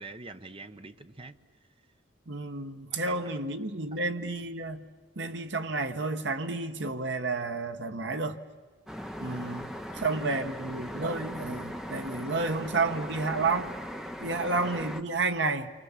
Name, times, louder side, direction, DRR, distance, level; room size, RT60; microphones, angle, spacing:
voice 1, 0.0-1.4 2.6-3.2 9.9-10.0 10.3-10.4, right 3 dB, 30° right, 1.0 m, -46 dB
voice 2, 2.3-4.8 5.2-8.4 9.2-13.7 14.2-15.7, right 3 dB, 65° right, 1.4 m, -31 dB
sound 1, 8.9-15.0, equal, 5° right, 0.9 m, -39 dB
29.0 x 24.5 x 7.5 m
head